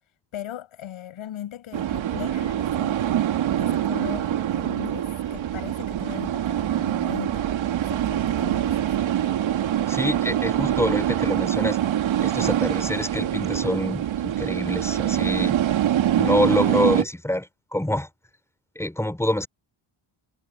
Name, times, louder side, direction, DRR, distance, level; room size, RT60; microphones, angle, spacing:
voice 1, 0.3-3.2 3.6-7.5 7.8-9.0, left 11 dB, 75° left, 7.5 m, -39 dB
sound 1, 1.7-17.0, right 11 dB, 70° right, 2.3 m, -24 dB
voice 2, 9.9-11.8 12.2-15.6 16.2-18.1 18.7-19.5, left 1 dB, 5° left, 6.2 m, -26 dB
cardioid pair, 140°, 49 cm